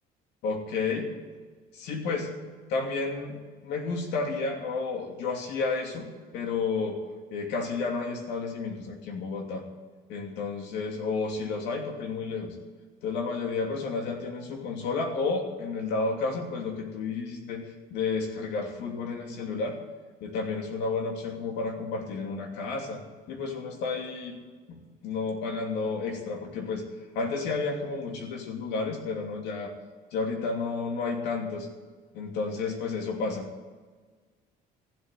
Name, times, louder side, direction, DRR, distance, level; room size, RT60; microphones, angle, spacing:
voice 1, 0.4-1.1 1.7-2.3 2.7-7.0 7.3-9.6 10.1-12.6 13.0-17.6 17.9-19.8 20.2-23.0 23.3-24.4 24.7-26.8 27.1-29.7 30.1-31.7 32.1-33.5, left 4 dB, 90° left, 2 dB, 2.9 m, -31 dB
15.0 x 8.2 x 9.2 m, 1.4 s
cardioid pair, 110°, 17 cm